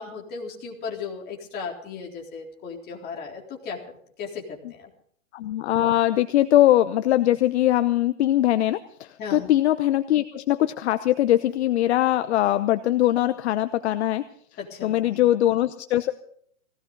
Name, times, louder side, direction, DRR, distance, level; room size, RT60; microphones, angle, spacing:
voice 1, 0.0-4.9 9.2-9.5 14.6-15.3, left 5 dB, 25° left, -1 dB, 3.9 m, -36 dB
voice 2, 5.3-14.2 14.8-16.1, left 13 dB, 50° left, 11 dB, 0.9 m, -21 dB
20.5 x 17.0 x 4.0 m, 0.63 s
hypercardioid pair, 145°, 41 cm